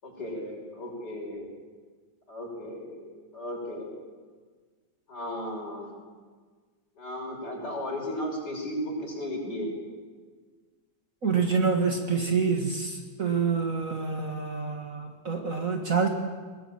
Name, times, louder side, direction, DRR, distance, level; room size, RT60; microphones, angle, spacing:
voice 1, 0.0-1.5 2.3-4.0 5.1-6.1 7.0-9.7, left 1 dB, 50° left, -1 dB, 6.5 m, -35 dB
voice 2, 11.2-16.1, right 5 dB, 40° right, 3 dB, 2.1 m, -27 dB
21.0 x 19.5 x 8.9 m, 1.5 s
omnidirectional pair, 2.2 m